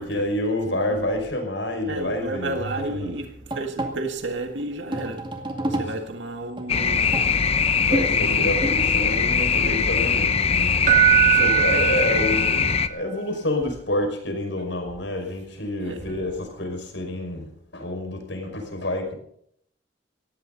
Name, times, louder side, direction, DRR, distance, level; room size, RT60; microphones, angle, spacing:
voice 1, 0.0-2.5 2.8-3.1 7.8-10.7 11.4-19.1, left 1 dB, 75° left, 5.6 m, -28 dB
voice 2, 0.7-1.1 1.9-5.3 5.7-7.1 7.8-7.9 8.2-8.6 9.0-9.9 11.2-12.4 15.8-16.3, right 2 dB, 75° right, 1.9 m, -33 dB
sound 1, 2.8-9.0, right 1 dB, 25° right, 2.1 m, -31 dB
sound 2, 6.7-12.9, left 6 dB, 35° left, 0.8 m, -21 dB
Keyboard (musical), 10.8-12.8 16.1-16.2, right 13 dB, 40° right, 1.6 m, -20 dB
19.0 x 15.5 x 4.1 m
head